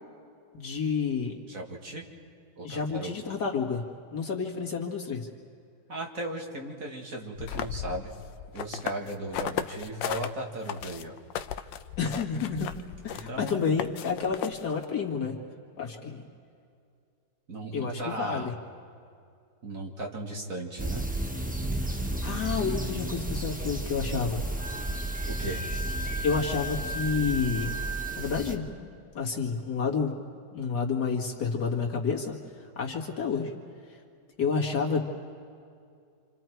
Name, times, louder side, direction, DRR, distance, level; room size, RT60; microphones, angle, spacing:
voice 1, 0.5-1.3 2.6-3.8 4.1-5.3 12.0-12.7 13.0-15.4 15.8-16.2 17.7-18.5 21.7-24.4 26.2-27.8 28.2-30.1 30.5-33.5 34.4-35.0, left 5 dB, 65° left, 0 dB, 2.5 m, -30 dB
voice 2, 1.5-2.1 2.6-3.3 5.9-8.1 8.5-11.2 13.1-13.8 17.5-18.5 19.6-21.0 25.3-25.6, right 1 dB, 50° right, 0 dB, 2.3 m, -36 dB
sound 1, 7.4-10.3 10.7-14.8, left 9 dB, 85° left, 1.4 m, -35 dB
sound 2, 20.8-28.6, right 1 dB, 10° right, 0.6 m, -33 dB
Wind instrument woodwind instrument, 24.6-28.3, right 1 dB, 90° right, 4.7 m, -37 dB
28.0 x 27.5 x 4.6 m, 2.4 s
omnidirectional pair, 1.9 m